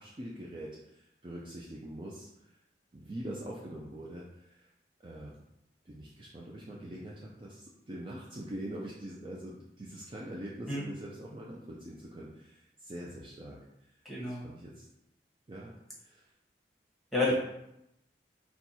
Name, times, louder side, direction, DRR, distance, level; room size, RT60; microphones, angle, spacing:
voice 1, 0.0-2.3 2.9-4.6 5.0-5.4 5.9-13.6 14.2-14.8 15.5-15.7 16.0-16.2 17.3-17.4, right 1 dB, 30° right, -4 dB, 0.4 m, -43 dB
voice 2, 14.1-14.4 17.1-17.3, left 2 dB, ahead, -6 dB, 1.1 m, -29 dB
4.3 x 2.3 x 4.1 m, 0.83 s
head